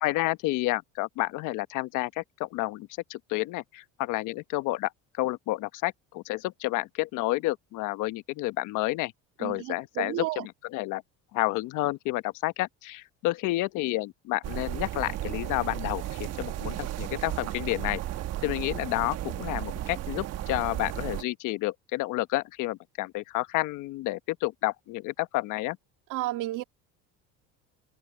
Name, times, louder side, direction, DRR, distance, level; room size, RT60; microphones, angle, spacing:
voice 1, 0.0-4.9 5.2-9.1 9.4-10.2 10.6-11.0 11.3-18.0 18.4-25.8, left 18 dB, 70° left, 1.0 m, -30 dB
voice 2, 9.4-10.5 26.1-26.6, right 17 dB, 70° right, 2.5 m, -32 dB
sound 1, 14.4-21.2, right 13 dB, 50° right, 1.2 m, -34 dB
cardioid pair, 130°, 32 cm